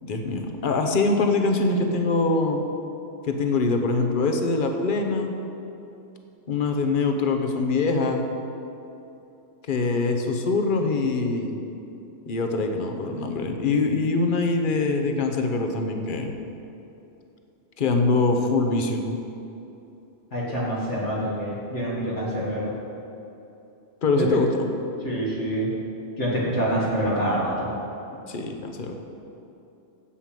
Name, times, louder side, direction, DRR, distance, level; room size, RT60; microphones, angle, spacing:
voice 1, 0.0-2.6 3.3-5.3 6.5-8.2 9.7-11.6 12.3-16.3 17.8-19.0 24.0-24.7 28.3-28.9, left 3 dB, 45° left, 4 dB, 1.0 m, -23 dB
voice 2, 20.3-22.7 25.0-25.7 26.2-27.7, right 1 dB, 65° left, -6 dB, 2.1 m, -26 dB
8.4 x 7.8 x 7.5 m, 2.8 s
omnidirectional pair, 1.3 m